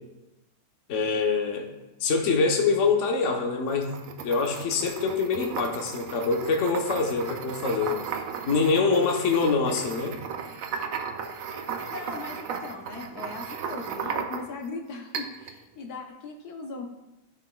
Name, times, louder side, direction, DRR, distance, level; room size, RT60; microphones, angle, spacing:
voice 1, 0.9-1.7 2.0-3.9 4.2-8.0 8.5-10.2, left 4 dB, 55° left, 2 dB, 1.2 m, -25 dB
sound 1, 3.7-14.7 15.1-15.6, right 6 dB, 70° right, 1.0 m, -35 dB
voice 2, 11.9-16.9, left 3 dB, 75° left, 2 dB, 1.3 m, -39 dB
13.0 x 5.4 x 2.3 m, 1.0 s
omnidirectional pair, 1.7 m